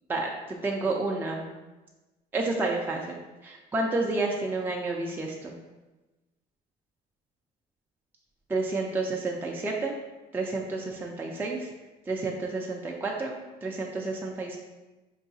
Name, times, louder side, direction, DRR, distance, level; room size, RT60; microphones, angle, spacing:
voice 1, 0.1-1.5 2.3-5.6 8.5-10.0 10.3-11.7 12.1-14.6, right 3 dB, 10° right, -1 dB, 0.4 m, -30 dB
4.7 x 2.7 x 2.6 m, 1.1 s
cardioid pair, 110°, 17 cm